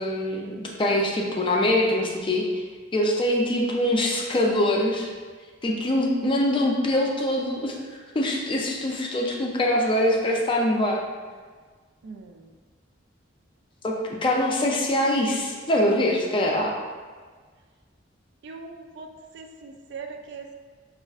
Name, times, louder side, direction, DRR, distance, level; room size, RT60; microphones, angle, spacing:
voice 1, 0.0-2.6 2.9-5.1 5.6-7.8 8.1-11.0 13.8-16.8, left 1 dB, 25° left, -1 dB, 0.4 m, -23 dB
voice 2, 12.0-12.6 18.4-20.5, right 4 dB, 60° right, 4 dB, 0.3 m, -41 dB
5.1 x 2.4 x 2.3 m, 1.5 s
head